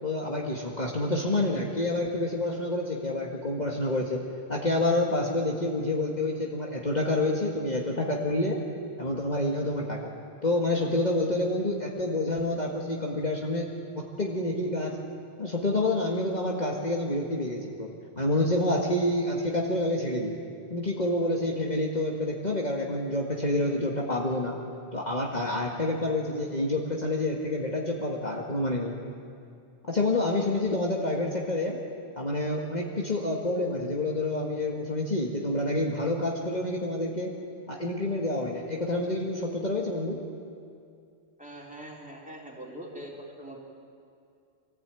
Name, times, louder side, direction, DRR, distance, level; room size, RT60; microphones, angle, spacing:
voice 1, 0.0-4.2 4.5-8.6 9.0-10.1 10.4-15.0 15.4-17.9 18.2-20.4 20.7-24.6 24.9-29.0 29.9-31.8 32.2-37.4 37.7-40.2, left 1 dB, 40° left, -2 dB, 2.0 m, -28 dB
voice 2, 41.4-43.1 43.4-43.6, right 1 dB, 5° right, -3 dB, 3.6 m, -42 dB
25.0 x 15.5 x 9.1 m, 2.4 s
omnidirectional pair, 1.1 m